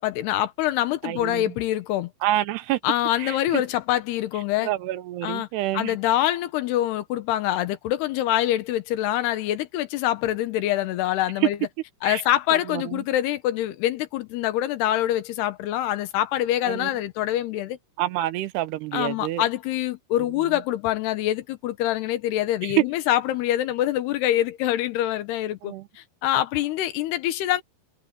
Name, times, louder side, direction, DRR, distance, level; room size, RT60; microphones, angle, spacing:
voice 1, 0.0-2.1 2.8-4.7 5.2-5.5 5.7-11.6 12.0-17.8 18.9-27.6, left 13 dB, 85° left, 3.1 m, -25 dB
voice 2, 1.0-1.5 2.2-2.8 3.2-3.6 4.6-6.0 11.4-11.5 12.0-12.2 12.5-13.0 16.7-16.9 18.0-19.4 22.6-22.9 25.6-25.9, right 15 dB, 90° right, 3.0 m, -27 dB
omnidirectional pair, 4.7 m